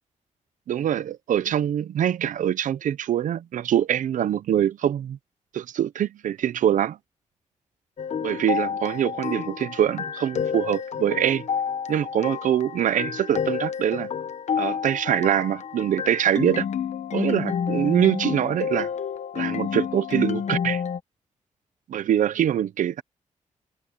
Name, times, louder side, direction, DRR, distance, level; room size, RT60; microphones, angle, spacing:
voice 1, 0.7-5.2 5.5-7.0 8.2-11.4 11.9-14.1 14.6-16.7 17.1-18.9 19.3-20.8 21.9-23.0, right 10 dB, 75° right, 0.7 m, -24 dB
sound 1, 8.0-21.0, left 7 dB, 60° left, 1.0 m, -29 dB
cardioid pair, 100°, 13 cm